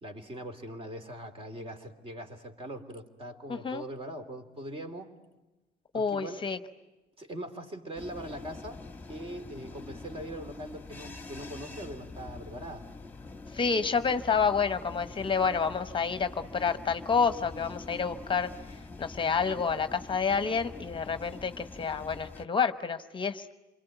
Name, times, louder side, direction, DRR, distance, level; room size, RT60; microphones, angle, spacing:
voice 1, 0.0-5.1 5.9-6.4 7.2-8.8 9.1-12.8, right 1 dB, 35° right, 7 dB, 3.0 m, -41 dB
voice 2, 3.5-3.8 5.9-6.6 13.5-18.5 19.0-23.5, left 5 dB, 30° left, 10 dB, 1.0 m, -29 dB
sound 1, 7.9-22.5, left 3 dB, 10° left, 1.6 m, -45 dB
28.0 x 22.5 x 9.2 m, 1.1 s
cardioid pair, 110°, 17 cm